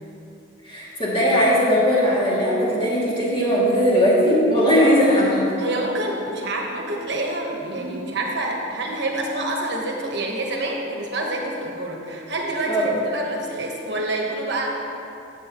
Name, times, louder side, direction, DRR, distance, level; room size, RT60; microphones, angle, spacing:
voice 1, 0.6-5.5 7.8-8.0 12.7-12.9, equal, 25° left, -7 dB, 2.4 m, -19 dB
voice 2, 5.6-14.7, right 2 dB, 60° right, 0 dB, 1.2 m, -27 dB
13.5 x 8.9 x 3.0 m, 2.8 s
head